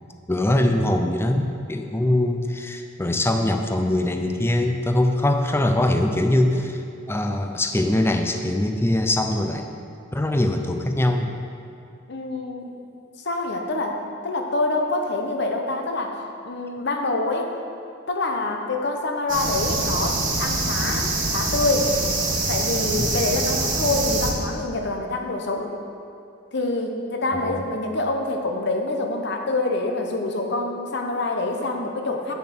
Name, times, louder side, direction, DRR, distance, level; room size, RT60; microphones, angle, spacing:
voice 1, 0.3-6.8 7.1-9.7 10.1-11.3 23.0-23.1 27.3-27.6, left 1 dB, 10° left, 5 dB, 0.6 m, -22 dB
voice 2, 12.1-12.8 13.2-16.1 16.4-17.5 18.1-21.9 22.5-25.7 26.5-32.3, left 2 dB, 60° left, 3 dB, 1.0 m, -26 dB
sound 1, 19.3-24.3, right 2 dB, 45° right, 1.4 m, -24 dB
8.4 x 6.9 x 6.1 m, 2.5 s
head